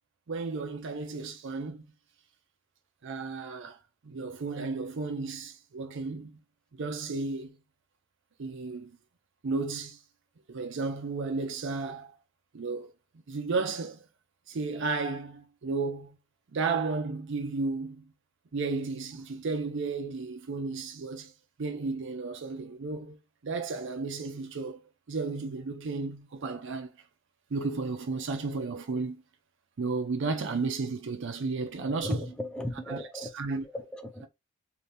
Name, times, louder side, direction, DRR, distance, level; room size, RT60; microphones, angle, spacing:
voice 1, 0.3-1.8 3.0-3.8 4.0-6.3 6.7-7.6 8.4-9.0 9.4-10.0 10.5-12.1 12.5-12.9 13.3-14.0 14.5-16.2 16.5-18.0 18.5-21.3 21.6-23.2 23.4-26.9 27.5-29.2 29.8-32.3 32.9-33.7, right 4 dB, 60° right, 0.5 m, -33 dB
voice 2, 31.9-33.3 33.7-34.3, left 1 dB, 5° left, 0.4 m, -36 dB
2.7 x 2.6 x 3.3 m
head